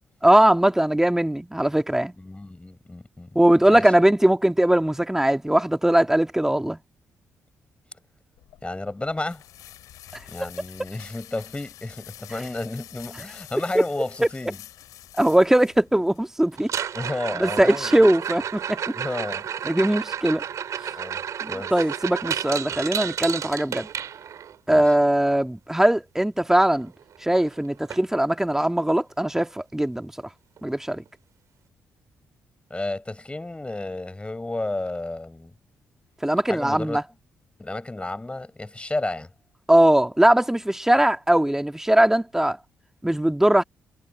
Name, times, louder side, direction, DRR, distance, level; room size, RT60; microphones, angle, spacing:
voice 1, 0.2-2.1 3.4-6.8 10.4-10.5 15.2-16.7 17.4-18.8 19.7-20.4 21.4-23.9 24.7-26.9 27.2-30.1 30.6-31.0 36.2-37.0 39.7-42.6 43.0-43.6, right 1 dB, 5° right, 1.8 m, -20 dB
voice 2, 2.2-3.3 3.7-3.8 8.6-9.4 10.3-14.6 16.9-18.1 18.9-19.5 20.9-21.2 21.5-21.7 24.7-24.9 32.7-35.5 36.5-37.0 37.6-39.3, left 2 dB, 20° left, 5.9 m, -32 dB
sound 1, 8.4-16.2, left 13 dB, 80° left, 6.1 m, -47 dB
sound 2, 16.6-24.6 26.8-26.9 27.2-27.5 27.9-28.0 28.6-28.7 30.6-30.7, right 8 dB, 65° right, 3.9 m, -31 dB
supercardioid pair, 50°, 6 cm